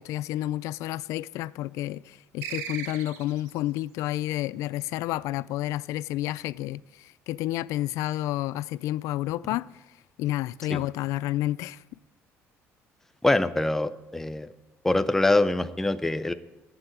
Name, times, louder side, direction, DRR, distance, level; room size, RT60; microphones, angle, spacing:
voice 1, 0.0-9.8 10.2-11.8, left 15 dB, 80° left, 0.3 m, -30 dB
sound 1, 2.4-3.6, right 8 dB, 85° right, 1.4 m, -37 dB
voice 2, 13.2-14.5 14.8-16.3, left 2 dB, 5° left, 0.5 m, -24 dB
11.5 x 8.1 x 9.1 m
cardioid pair, 150°, 5 cm